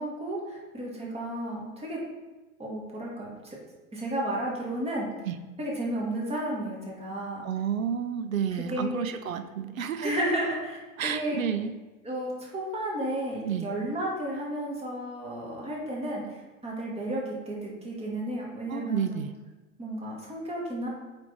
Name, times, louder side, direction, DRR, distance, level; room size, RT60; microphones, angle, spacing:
voice 1, 0.0-2.0 2.6-3.3 3.9-5.1 5.6-7.4 8.5-9.1 10.0-11.4 12.0-16.2 16.6-19.3 19.8-20.9, right 1 dB, 15° right, -3 dB, 1.7 m, -32 dB
voice 2, 7.4-10.1 11.0-11.7 13.4-13.7 18.7-19.3, right 8 dB, 80° right, 11 dB, 0.6 m, -30 dB
8.2 x 3.5 x 4.0 m, 1.2 s
figure-of-eight pair, 90°, 41 cm